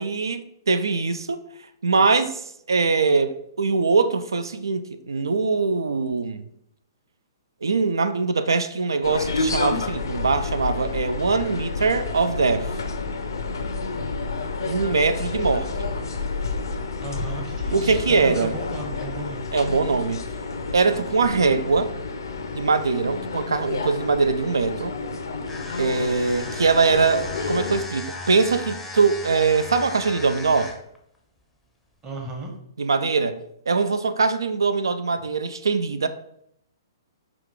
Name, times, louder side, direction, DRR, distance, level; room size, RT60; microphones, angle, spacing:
voice 1, 0.0-1.4 1.8-6.4 7.6-12.7 14.6-15.9 17.7-18.5 19.5-20.2 20.7-21.9 22.5-24.9 25.8-30.7 32.8-36.1, right 4 dB, 80° right, 0.3 m, -22 dB
sound 1, 9.0-27.8, left 3 dB, 75° left, 0.5 m, -30 dB
voice 2, 17.0-19.5 32.0-32.5, right 2 dB, 25° right, 0.9 m, -35 dB
sound 2, 25.4-31.0, left 2 dB, 5° left, 0.6 m, -37 dB
4.7 x 2.4 x 3.7 m
hypercardioid pair, 125°, 2 cm